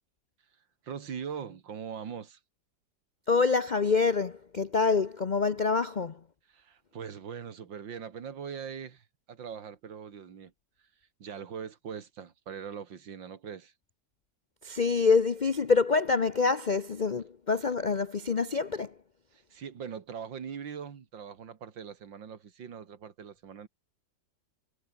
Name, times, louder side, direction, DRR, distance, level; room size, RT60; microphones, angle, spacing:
voice 1, 0.8-2.4 6.5-10.5 11.2-13.7 19.3-23.7, right 7 dB, 80° right, 2.6 m, -41 dB
voice 2, 3.3-6.2 14.6-19.0, left 4 dB, 70° left, 0.4 m, -26 dB
omnidirectional pair, 2.0 m